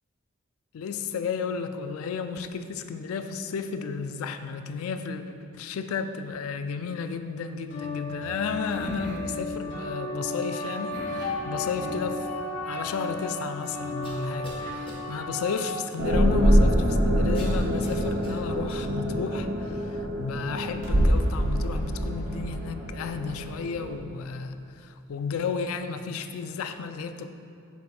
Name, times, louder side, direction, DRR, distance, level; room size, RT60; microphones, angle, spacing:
voice 1, 0.7-12.3 12.7-27.3, left 5 dB, 80° left, 9 dB, 0.3 m, -33 dB
sound 1, 7.7-15.7, left 2 dB, 55° left, 1.0 m, -34 dB
sound 2, 8.7-9.4 10.9-12.1 12.9-13.0 14.0-14.6 14.9-15.0 17.3-18.8, left 1 dB, 25° left, 0.9 m, -41 dB
sound 3, 16.0-24.0, equal, 65° right, 0.9 m, -25 dB
6.4 x 3.8 x 4.2 m, 2.6 s
head